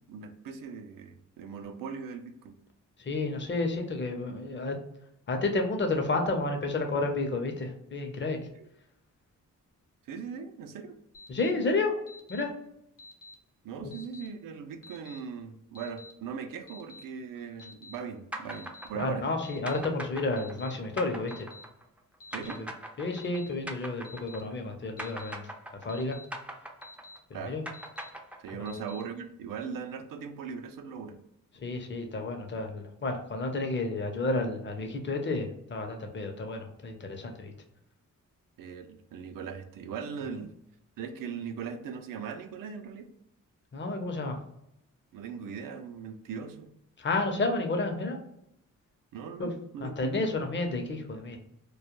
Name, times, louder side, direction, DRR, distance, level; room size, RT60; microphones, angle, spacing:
voice 1, 0.1-2.6 8.5-8.7 10.0-11.0 13.6-19.3 22.3-22.6 27.3-27.6 28.4-31.2 38.6-40.5 41.0-43.1 45.1-46.7 49.1-50.3, right 6 dB, 75° right, 8 dB, 0.5 m, -39 dB
voice 2, 3.0-4.7 5.3-8.4 11.3-11.9 12.3-12.5 18.9-21.5 22.6-22.7 23.0-25.5 25.8-26.2 27.3-27.6 28.5-28.7 31.6-37.5 43.7-44.4 47.0-48.2 49.4-49.5 49.8-51.4, left 2 dB, 35° left, 4 dB, 0.6 m, -31 dB
Alarm, 11.1-11.5 12.1-12.4 13.0-13.3 13.9-14.3 14.8-15.2 15.7-16.1 16.7-17.0 17.6-18.0 18.5-18.9 19.4-19.8 20.4-20.7 21.3-21.6 22.2-22.6 23.1-23.5 24.0-24.4 25.0-25.3 25.9-26.2 26.8-27.2 27.7-28.1 28.7-29.0, left 2 dB, 70° left, 0.8 m, -49 dB
sound 1, 18.3-24.7 25.0-28.8, right 1 dB, 5° right, 0.4 m, -41 dB
2.3 x 2.1 x 2.9 m, 0.77 s
cardioid pair, 70°, 33 cm